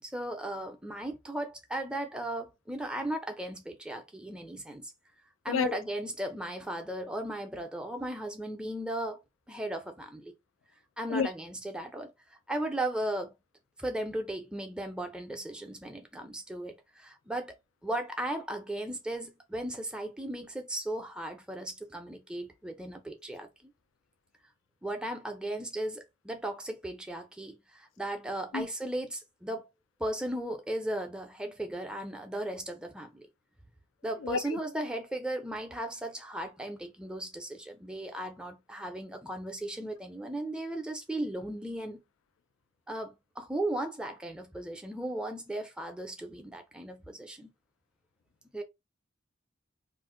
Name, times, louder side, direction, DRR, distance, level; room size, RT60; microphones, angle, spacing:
voice 1, 0.0-4.9 5.4-9.2 9.5-10.3 11.0-12.1 12.5-13.3 13.8-17.5 17.8-23.7 24.8-29.7 30.0-33.3 34.0-42.0 42.9-47.5 48.5-48.6, right 1 dB, 5° right, 0.4 m, -36 dB
voice 2, 5.5-5.8 11.1-11.3 28.5-28.7 34.2-34.6, left 5 dB, 85° left, 0.4 m, -30 dB
2.5 x 2.1 x 3.6 m
head